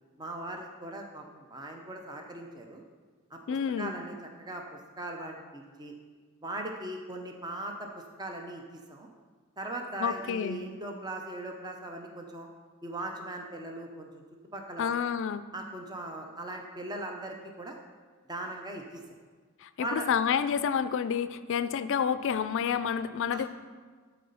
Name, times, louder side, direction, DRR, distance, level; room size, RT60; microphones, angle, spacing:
voice 1, 0.2-2.8 3.3-3.4 3.8-5.9 6.4-7.9 8.2-9.1 9.6-12.5 12.8-14.1 14.5-14.9 15.5-17.8 18.3-19.0 19.8-20.1 23.3-23.5, right 1 dB, 20° right, 2 dB, 0.7 m, -39 dB
voice 2, 3.5-3.9 10.0-10.6 14.8-15.5 19.6-23.5, left 7 dB, 60° left, 13 dB, 0.3 m, -29 dB
12.5 x 4.2 x 5.5 m, 1.5 s
head